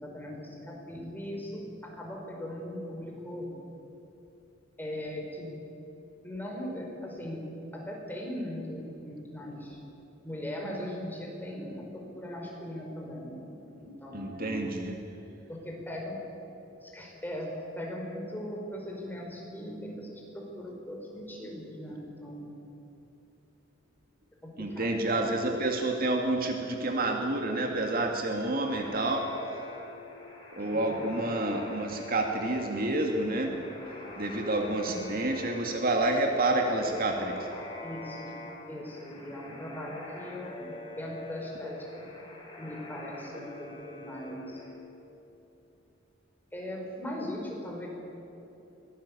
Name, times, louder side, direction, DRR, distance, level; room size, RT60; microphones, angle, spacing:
voice 1, 0.0-3.5 4.8-5.5 6.2-9.8 10.2-14.5 15.5-16.2 16.8-22.6 24.4-25.3 30.7-31.0 37.8-38.4 38.7-42.1 42.6-44.6 46.5-47.9, equal, 10° left, -1 dB, 5.0 m, -39 dB
voice 2, 14.1-15.0 24.6-29.3 30.5-33.6 34.2-37.5, right 2 dB, 50° right, 3 dB, 2.2 m, -29 dB
sound 1, 28.7-44.7, left 2 dB, 25° left, 5.9 m, -45 dB
23.0 x 18.0 x 8.6 m, 3.0 s
head